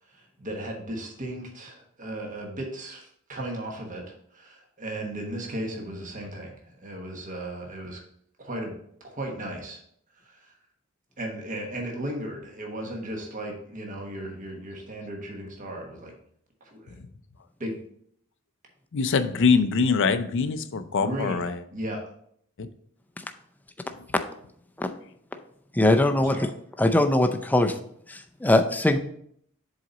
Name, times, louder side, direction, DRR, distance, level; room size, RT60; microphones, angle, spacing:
voice 1, 0.1-8.0 8.4-9.8 10.2-10.6 11.2-16.1 16.6-17.0 17.6-17.8 21.0-22.0 26.1-26.5, right 1 dB, 40° right, 1.2 m, -36 dB
voice 2, 18.9-21.6 22.6-22.7 23.9-24.0, left 5 dB, 60° left, 0.5 m, -24 dB
voice 3, 25.8-26.4 26.8-27.7 28.1-29.0, left 1 dB, 10° left, 0.5 m, -21 dB
7.6 x 4.1 x 3.9 m
head